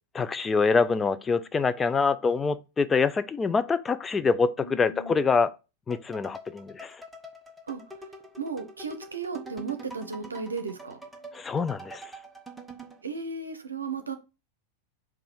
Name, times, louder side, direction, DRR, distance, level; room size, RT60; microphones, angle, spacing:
voice 1, 0.1-5.5 5.9-7.0 11.3-12.1, left 4 dB, 15° left, 0.3 m, -25 dB
voice 2, 4.6-5.2 7.7-7.8 8.4-11.0 13.0-14.1, right 4 dB, 75° right, 0.7 m, -35 dB
sound 1, 5.9-13.0, right 2 dB, 5° right, 0.8 m, -45 dB
4.7 x 2.4 x 4.7 m
figure-of-eight pair, 90°, 0 cm